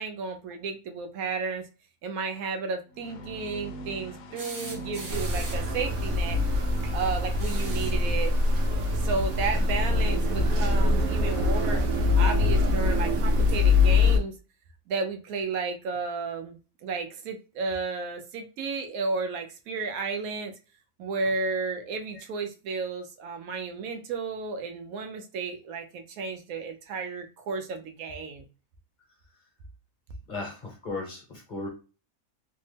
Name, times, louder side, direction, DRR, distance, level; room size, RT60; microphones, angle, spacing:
voice 1, 0.0-1.7 2.0-6.4 6.9-8.3 9.0-11.8 12.1-14.3 14.9-20.5 21.0-28.4, right 4 dB, 85° right, 5 dB, 1.1 m, -33 dB
sound 1, 2.9-12.0, equal, 70° left, 0.9 m, -43 dB
sound 2, 4.4-5.8 7.3-8.1 9.7-9.8 11.3-11.4, right 2 dB, 45° right, 0.4 m, -41 dB
sound 3, 5.1-14.2, left 3 dB, 65° right, 0.9 m, -24 dB
voice 2, 30.3-31.7, left 3 dB, 40° left, 0 dB, 0.8 m, -36 dB
3.3 x 2.0 x 3.2 m, 0.33 s
omnidirectional pair, 1.4 m